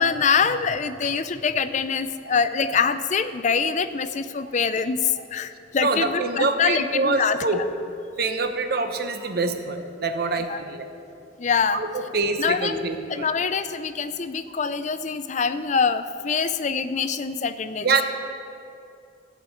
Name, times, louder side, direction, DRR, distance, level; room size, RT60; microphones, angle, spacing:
voice 1, 0.0-7.6 10.5-10.6 11.4-11.8 12.4-12.8 13.1-17.9, left 5 dB, 40° left, 12 dB, 0.4 m, -24 dB
voice 2, 5.8-7.6 8.2-10.9 11.7-13.3 17.8-18.0, right 3 dB, 55° right, 6 dB, 0.9 m, -25 dB
15.0 x 5.3 x 7.6 m, 2.5 s
head